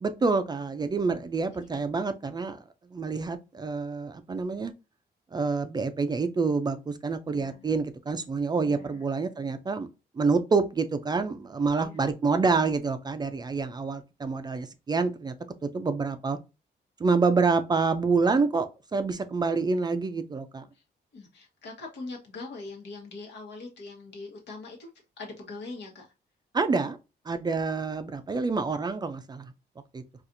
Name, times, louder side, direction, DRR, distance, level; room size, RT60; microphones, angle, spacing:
voice 1, 0.0-2.6 2.9-4.7 5.3-9.9 10.2-15.3 15.6-16.4 17.0-20.6 26.5-27.0 27.3-29.5 29.9-30.0, right 4 dB, 25° right, 0.3 m, -27 dB
voice 2, 7.3-7.7 8.6-9.0 11.8-12.0 21.1-24.9 25.2-26.0, left 3 dB, 80° left, 1.1 m, -42 dB
4.2 x 2.4 x 2.5 m
cardioid pair, 135°, 18 cm